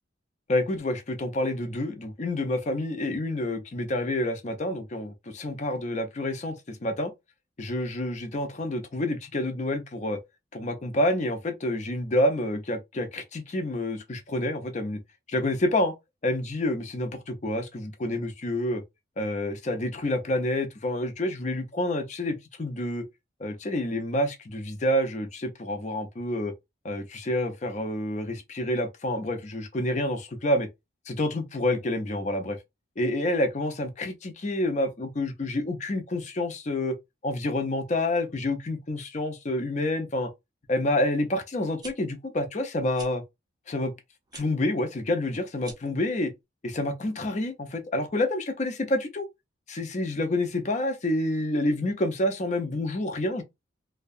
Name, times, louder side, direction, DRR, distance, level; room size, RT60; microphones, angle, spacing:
voice 1, 0.5-7.1 7.6-10.2 10.5-15.0 15.3-15.9 16.2-18.8 19.2-23.1 23.4-26.5 26.8-30.7 31.1-32.6 33.0-37.0 37.2-40.3 40.7-43.2 43.7-43.9 44.3-46.3 46.6-49.3 49.7-53.4, left 1 dB, 40° left, 0.5 m, -28 dB
sound 1, 41.8-41.9 42.9-43.1 44.3-44.5 45.6-46.0, right 3 dB, 20° right, 0.5 m, -44 dB
2.6 x 2.2 x 2.4 m
head